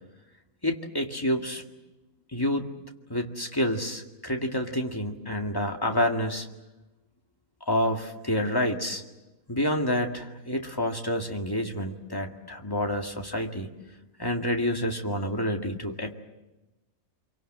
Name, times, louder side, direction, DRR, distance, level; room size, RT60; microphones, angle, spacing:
voice 1, 0.6-1.6 2.3-2.7 3.1-6.5 7.7-9.0 9.5-13.7 14.2-16.1, left 1 dB, 15° left, 3 dB, 2.0 m, -28 dB
26.0 x 24.5 x 7.7 m, 1.1 s
omnidirectional pair, 1.4 m